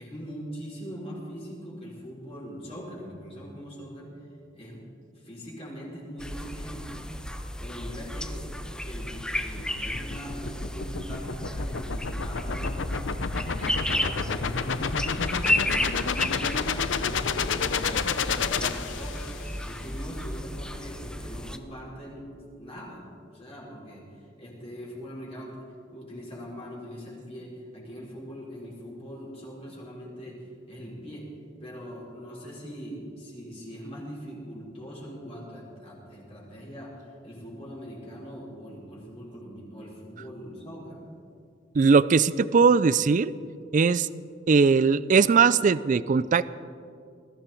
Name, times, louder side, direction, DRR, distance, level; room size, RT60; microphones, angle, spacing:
voice 1, 0.0-4.1 4.5-4.8 5.1-7.3 7.6-8.5 8.8-13.0 13.4-16.8 17.1-22.3 22.6-23.0 23.3-25.6 25.9-31.3 31.6-41.0, equal, 35° left, -5 dB, 5.1 m, -41 dB
sound 1, 6.2-21.6, left 1 dB, 5° left, 0.7 m, -33 dB
sound 2, 9.2-19.5, left 5 dB, 80° left, 0.7 m, -30 dB
voice 2, 41.8-43.3 43.7-44.1 44.5-46.5, right 5 dB, 45° right, 17 dB, 0.4 m, -20 dB
21.0 x 15.0 x 4.5 m, 2.4 s
head